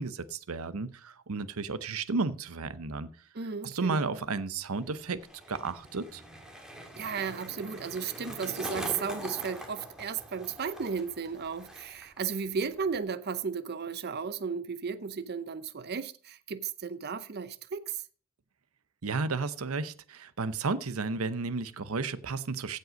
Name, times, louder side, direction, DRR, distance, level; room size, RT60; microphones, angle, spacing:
voice 1, 0.0-3.1 3.6-5.2 5.5-6.2 19.0-22.8, right 4 dB, 80° right, 0.8 m, -33 dB
voice 2, 3.3-4.2 7.0-18.0, right 6 dB, 50° right, 0.6 m, -34 dB
Skateboard, 4.6-12.2 12.5-13.0, equal, 5° right, 1.8 m, -43 dB
15.5 x 5.5 x 5.1 m
head